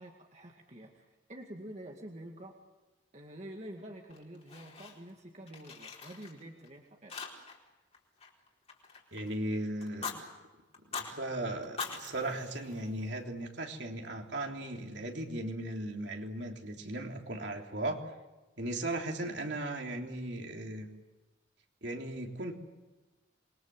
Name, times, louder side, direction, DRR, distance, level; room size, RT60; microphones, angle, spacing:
voice 1, 0.0-2.5 3.1-7.1, right 1 dB, 35° right, 1 dB, 2.2 m, -48 dB
Fire, 4.1-5.2 5.5-6.7 7.1-7.7 7.9-9.3 9.8-10.2 10.7-11.1 11.6-13.2, left 5 dB, 30° left, 4.3 m, -43 dB
voice 2, 9.1-10.2 10.8-18.0 18.6-20.9 21.8-22.5, right 1 dB, 60° right, 2 dB, 3.5 m, -37 dB
27.5 x 22.5 x 7.8 m, 1.2 s
head